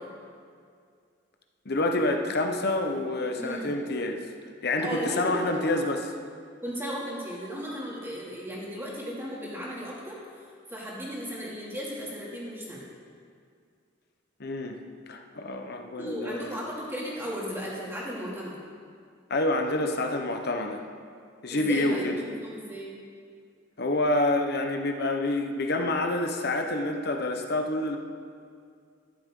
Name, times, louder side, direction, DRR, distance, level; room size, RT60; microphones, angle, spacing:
voice 1, 1.6-4.2 4.6-6.1 14.4-14.8 15.1-16.6 19.3-20.8 21.4-22.2 23.8-28.0, left 2 dB, 55° left, 4 dB, 1.0 m, -27 dB
voice 2, 3.4-3.7 4.8-5.6 6.6-10.2 10.7-12.8 16.0-18.6 21.5-22.9, equal, 10° right, -6 dB, 2.7 m, -35 dB
13.5 x 11.5 x 3.8 m, 2.2 s
head